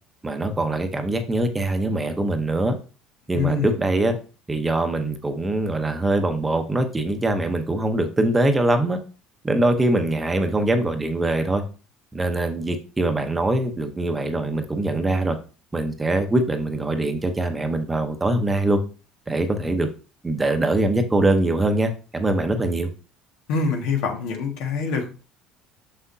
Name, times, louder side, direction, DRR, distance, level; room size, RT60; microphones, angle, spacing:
voice 1, 0.2-2.7 3.3-4.2 4.5-9.0 9.4-11.6 12.1-15.4 15.7-18.8 19.3-19.9 20.2-22.9, right 2 dB, 15° right, 6 dB, 0.9 m, -23 dB
voice 2, 3.3-3.7 23.5-25.1, left 5 dB, 80° left, 3 dB, 1.7 m, -24 dB
6.5 x 6.0 x 2.7 m, 0.35 s
cardioid pair, 125°, 0 cm